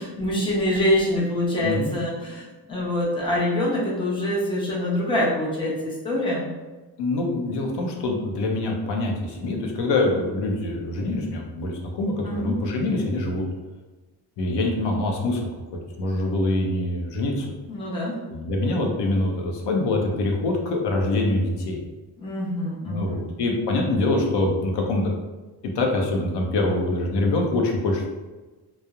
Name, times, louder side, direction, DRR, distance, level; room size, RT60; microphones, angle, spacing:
voice 1, 0.0-6.5 12.2-12.6 17.7-18.1 22.2-23.2, left 1 dB, 15° left, -6 dB, 0.6 m, -25 dB
voice 2, 1.6-1.9 7.0-13.4 14.4-15.4 16.0-17.5 18.3-21.8 22.8-25.1 25.7-28.0, left 2 dB, 85° left, 1 dB, 0.6 m, -24 dB
2.9 x 2.0 x 2.3 m, 1.2 s
cardioid pair, 145°, 41 cm